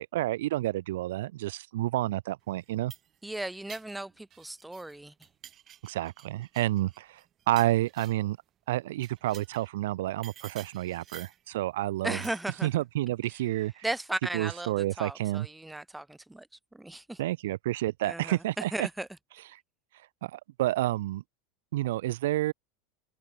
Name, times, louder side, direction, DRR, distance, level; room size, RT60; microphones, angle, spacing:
voice 1, 0.0-2.9 5.8-7.2 7.5-8.4 8.7-12.2 12.6-13.8 14.3-15.5 17.2-18.9 20.2-21.2 21.7-22.5, right 15 dB, 65° right, 0.4 m, -29 dB
sound 1, 2.6-4.9 5.2-8.3 8.9-9.7 10.2-11.5 12.2-12.6, right 11 dB, 35° right, 1.8 m, -51 dB
voice 2, 3.2-5.1 12.0-12.7 13.8-16.5 16.7-17.2 18.0-19.1, right 1 dB, 5° right, 0.6 m, -36 dB
figure-of-eight pair, 80°, 0 cm